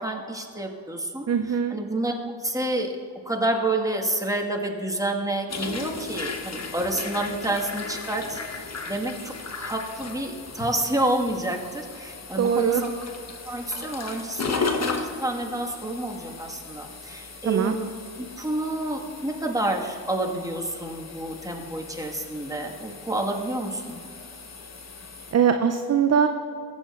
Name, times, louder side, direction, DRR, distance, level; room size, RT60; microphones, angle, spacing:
voice 1, 0.0-2.1 2.4-2.9 3.2-12.8 13.4-17.9 18.2-24.0, right 1 dB, 5° right, 0 dB, 1.6 m, -29 dB
voice 2, 1.3-1.8 12.4-12.8 17.5-17.7 25.3-26.3, right 7 dB, 35° right, 7 dB, 0.6 m, -21 dB
sound 1, 5.5-25.3, left 4 dB, 35° left, 1.1 m, -36 dB
15.0 x 8.6 x 2.5 m, 2.3 s
hypercardioid pair, 40°, 47 cm